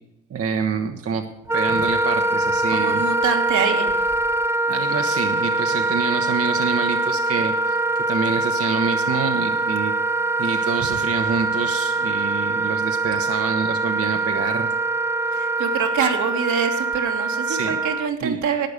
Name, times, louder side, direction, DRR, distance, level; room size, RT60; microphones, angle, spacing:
voice 1, 0.3-1.2 1.5-3.1 4.7-9.9 10.4-14.7 17.5-17.8 18.2-18.4, right 5 dB, 50° right, 5 dB, 1.1 m, -27 dB
Wind instrument woodwind instrument, 1.5-18.1, right 2 dB, 10° right, 0.5 m, -23 dB
voice 2, 2.7-4.1 15.3-18.7, right 6 dB, 75° right, 3 dB, 2.1 m, -25 dB
12.0 x 8.8 x 6.6 m, 0.95 s
cardioid pair, 90°, 30 cm